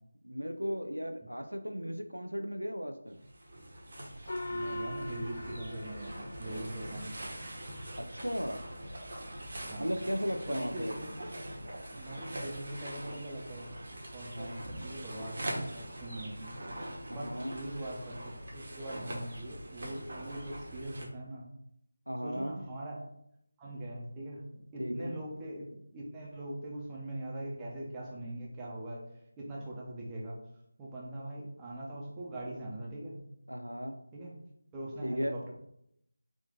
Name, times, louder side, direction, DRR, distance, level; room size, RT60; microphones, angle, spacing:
voice 1, 0.2-3.2 8.0-8.6 9.8-11.0 14.3-14.6 17.1-17.5 22.1-22.6 24.8-25.1 33.5-34.0 35.0-35.3, equal, 90° right, 6 dB, 0.4 m, -36 dB
sound 1, 3.1-21.0, right 1 dB, 50° right, 1.0 m, -43 dB
Gong, 4.3-7.2, left 1 dB, 60° left, 0.5 m, -40 dB
voice 2, 4.5-7.2 9.7-10.0 10.5-11.1 11.9-13.7 14.1-16.6 17.1-18.2 18.5-21.5 22.2-23.1 23.6-29.0 29.4-30.4 30.8-33.2 34.1-34.4 34.7-35.5, right 1 dB, 10° right, -3 dB, 0.6 m, -42 dB
3.6 x 2.5 x 3.6 m, 0.76 s
figure-of-eight pair, 165°, 0 cm